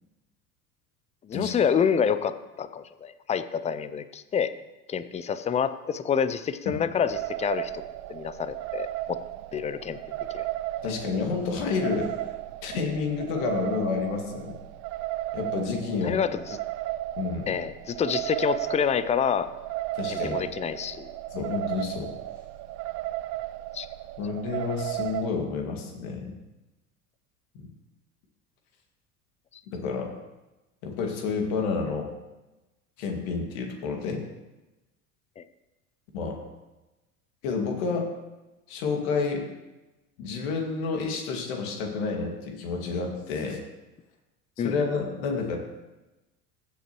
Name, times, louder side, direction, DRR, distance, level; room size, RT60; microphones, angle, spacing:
voice 1, 1.2-4.5 4.9-7.8 8.1-9.2 9.5-10.0 10.3-10.5 10.8-10.9 16.0-16.6 17.5-19.5 20.1-21.1 23.7-23.9 35.4-35.5 44.6-44.8, left 7 dB, 15° left, 13 dB, 0.4 m, -27 dB
sound 1, 7.1-25.3, right 16 dB, 40° right, 0.5 m, -35 dB
voice 2, 10.8-12.1 12.6-14.6 15.3-16.2 17.2-17.6 19.9-20.5 21.3-22.1 24.2-26.4 27.6-27.7 29.7-30.1 30.8-32.1 33.0-34.3 36.1-36.4 37.4-38.1 38.7-39.5 40.2-43.6 44.6-45.6, left 4 dB, 65° left, 2 dB, 2.2 m, -29 dB
15.0 x 7.8 x 3.1 m, 1.1 s
hypercardioid pair, 80°, 45 cm